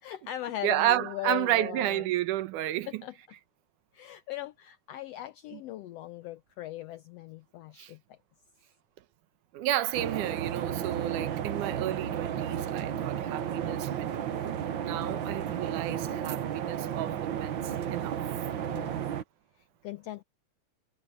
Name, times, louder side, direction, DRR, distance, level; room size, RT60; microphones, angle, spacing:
voice 1, 0.0-2.1 2.9-3.2 3.9-8.2 14.9-15.4 18.6-18.9 19.6-20.2, left 14 dB, 85° left, 1.4 m, -39 dB
voice 2, 0.6-2.9 7.8-7.9 9.5-17.6 17.9-18.2, right 13 dB, 90° right, 2.4 m, -31 dB
sound 1, 9.9-19.2, right 9 dB, 75° right, 1.1 m, -33 dB
omnidirectional pair, 3.5 m